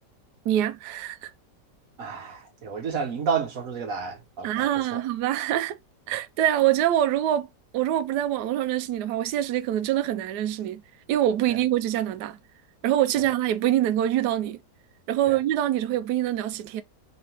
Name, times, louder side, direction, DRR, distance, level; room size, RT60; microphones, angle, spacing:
voice 1, 0.4-1.3 4.4-5.8 6.1-7.5 7.7-10.8 11.1-12.4 12.8-14.6 15.1-16.8, right 12 dB, 75° right, 1.1 m, -25 dB
voice 2, 2.0-4.6 4.9-5.0 15.3-15.4, right 6 dB, 55° right, 1.4 m, -30 dB
3.9 x 3.3 x 3.0 m
omnidirectional pair, 1.8 m